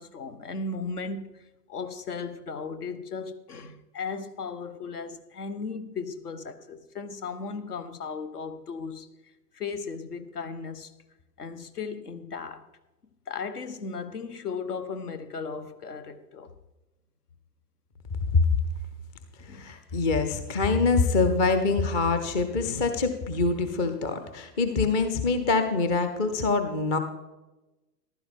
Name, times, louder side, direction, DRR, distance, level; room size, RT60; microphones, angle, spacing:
voice 1, 0.0-9.1 9.5-10.9 11.4-12.7 13.3-16.5 19.4-19.7, left 4 dB, 65° left, 1.3 m, -36 dB
voice 2, 19.4-27.0, left 4 dB, 15° left, 0.6 m, -25 dB
14.5 x 12.0 x 3.6 m
figure-of-eight pair, 115°, 49 cm